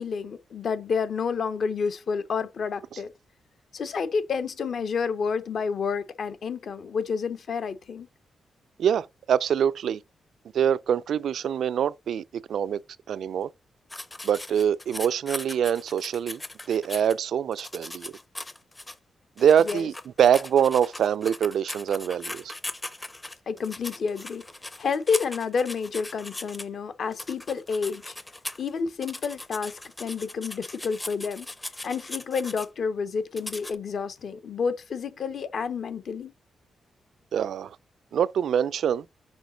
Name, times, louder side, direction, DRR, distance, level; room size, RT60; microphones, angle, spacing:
voice 1, 0.0-3.1 3.7-8.1 19.6-19.9 23.5-24.4 24.8-28.1 28.6-31.5 31.8-36.3, left 5 dB, 55° left, 0.7 m, -29 dB
voice 2, 8.8-10.0 10.5-12.2 12.5-12.8 13.1-13.5 14.2-16.4 16.7-18.1 19.4-19.9 20.2-22.5 37.3-37.7 38.1-39.0, right 8 dB, 75° right, 0.3 m, -24 dB
sound 1, 13.9-17.1 17.5-19.0 19.4-26.6 27.1-28.7 29.0-32.7 33.4-33.8, left 2 dB, 15° left, 0.5 m, -39 dB
6.2 x 4.8 x 3.9 m
wide cardioid pair, 150°, 0 cm